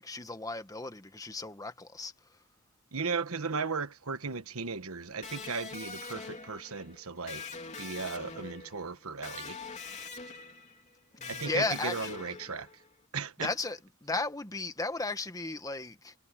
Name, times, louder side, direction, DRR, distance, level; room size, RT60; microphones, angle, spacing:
voice 1, 0.0-2.1 11.2-12.4 13.4-16.1, left 3 dB, 15° left, 1.4 m, -35 dB
voice 2, 2.9-7.4 7.8-9.6 11.3-12.7 13.1-13.5, right 5 dB, 80° right, 1.3 m, -36 dB
Electric guitar, 5.2-12.9, left 4 dB, 35° left, 3.4 m, -44 dB
head